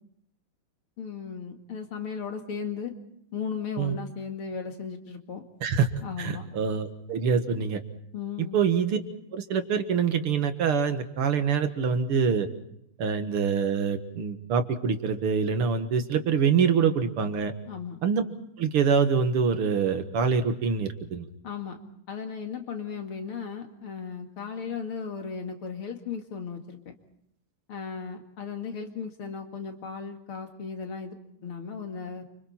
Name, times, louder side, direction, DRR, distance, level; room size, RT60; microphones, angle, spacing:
voice 1, 1.0-2.9 3.3-5.4 6.0-6.5 8.1-8.6 17.7-18.0 21.4-21.8 22.1-26.9 27.7-32.2, left 6 dB, 80° left, 4 dB, 3.1 m, -36 dB
voice 2, 6.2-7.8 8.4-9.0 9.3-12.5 13.0-17.5 18.0-18.2 18.6-21.3, right 6 dB, 85° right, 8 dB, 2.5 m, -25 dB
29.0 x 26.0 x 4.4 m, 0.73 s
omnidirectional pair, 2.4 m